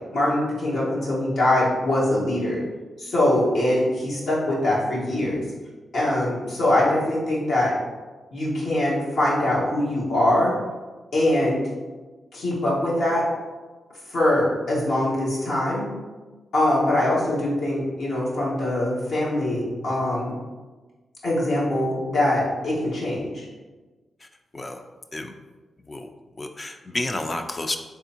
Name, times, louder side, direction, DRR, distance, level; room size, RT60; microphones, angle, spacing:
voice 1, 0.1-2.6 3.0-5.4 5.9-7.7 8.3-10.5 11.1-11.6 12.3-13.2 14.1-15.8 16.5-20.3 21.2-23.4, left 1 dB, 75° left, -6 dB, 1.4 m, -23 dB
voice 2, 26.4-27.8, left 2 dB, 35° left, 5 dB, 0.4 m, -30 dB
3.5 x 3.5 x 2.8 m, 1.3 s
supercardioid pair, 50°, 0 cm